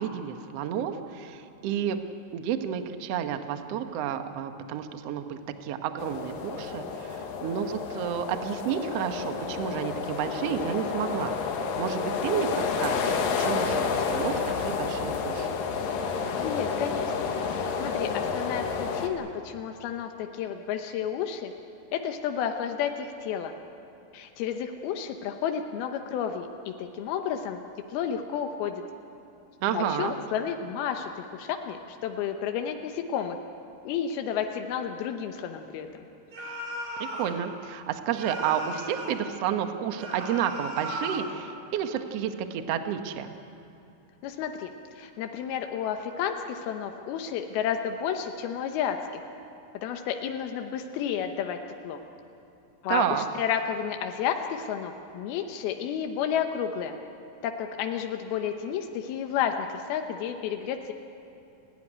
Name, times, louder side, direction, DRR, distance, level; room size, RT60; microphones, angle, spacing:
voice 1, 0.0-2.0 2.3-11.4 11.8-12.5 12.8-15.5 29.6-30.1 37.0-43.3 52.9-53.2, right 9 dB, 65° right, 7 dB, 1.6 m, -31 dB
sound 1, 6.0-19.1, left 5 dB, 70° left, 3.1 m, -30 dB
voice 2, 16.4-17.1 17.5-21.5 21.9-23.5 24.1-27.6 27.9-28.8 29.7-33.4 33.8-36.0 44.2-49.2 49.8-51.6 51.8-52.0 52.8-57.0 57.4-60.9, left 8 dB, 90° left, 5 dB, 2.9 m, -31 dB
sound 2, 36.3-37.4 38.1-39.3 40.0-41.3, equal, 50° right, 4.3 m, -36 dB
29.5 x 12.5 x 10.0 m, 2.7 s
omnidirectional pair, 4.3 m